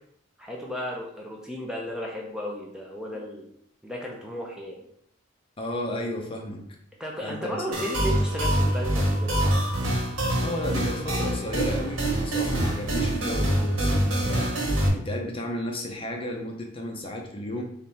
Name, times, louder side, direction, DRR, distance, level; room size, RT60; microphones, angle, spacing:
voice 1, 0.4-3.5 3.8-4.9 7.0-9.8, equal, 5° right, -2 dB, 0.5 m, -34 dB
voice 2, 5.6-6.6 7.2-7.6 10.4-17.6, left 1 dB, 30° left, 1 dB, 0.7 m, -33 dB
sound 1, 7.7-14.9, right 1 dB, 90° right, 1.5 m, -25 dB
4.0 x 3.2 x 4.1 m, 0.69 s
head